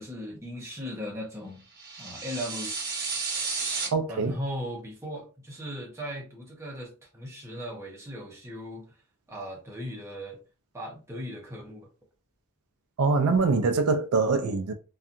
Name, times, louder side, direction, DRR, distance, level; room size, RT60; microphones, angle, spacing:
voice 1, 0.0-1.6 2.0-2.8 3.4-3.6 4.1-8.9 9.3-10.4 10.7-11.9, equal, 15° right, 0.7 m, -38 dB
sound 1, 1.8-3.9, right 4 dB, 45° right, 0.9 m, -32 dB
voice 2, 3.9-4.4 13.0-14.7, right 4 dB, 85° right, 0.4 m, -24 dB
2.7 x 2.3 x 2.5 m
head